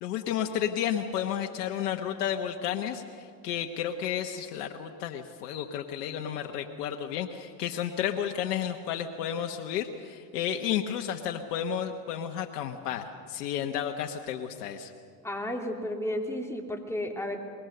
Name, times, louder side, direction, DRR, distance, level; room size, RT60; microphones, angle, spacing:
voice 1, 0.0-14.9, left 9 dB, 80° left, 4 dB, 1.3 m, -32 dB
voice 2, 15.2-17.4, left 1 dB, 5° left, 1 dB, 3.3 m, -33 dB
24.0 x 21.5 x 6.8 m, 2.4 s
hypercardioid pair, 85°, 48 cm